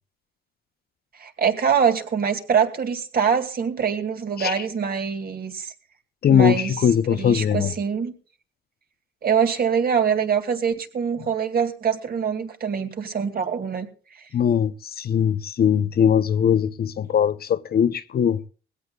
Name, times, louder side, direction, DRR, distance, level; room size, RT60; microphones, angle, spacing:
voice 1, 1.2-5.7 6.3-6.7 7.1-8.1 9.2-13.9, right 7 dB, 50° right, 2.4 m, -24 dB
voice 2, 6.2-7.7 14.3-18.4, left 8 dB, 50° left, 0.7 m, -20 dB
20.0 x 16.5 x 2.4 m
cardioid pair, 90°, 20 cm